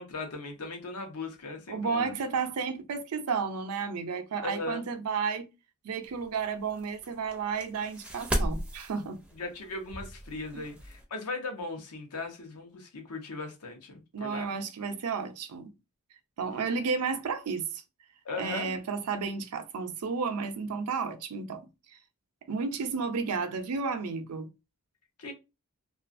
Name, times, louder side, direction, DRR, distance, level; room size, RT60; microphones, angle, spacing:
voice 1, 0.0-2.2 4.4-4.8 9.3-14.5 18.2-18.8 25.2-25.3, left 3 dB, 90° left, 0.8 m, -38 dB
voice 2, 1.7-5.5 5.8-9.2 10.5-10.6 14.1-15.7 16.4-17.8 18.4-21.7 22.5-24.5, right 5 dB, 85° right, 0.5 m, -32 dB
sound 1, 6.0-11.0, right 1 dB, 5° right, 0.4 m, -36 dB
2.4 x 2.3 x 2.4 m
head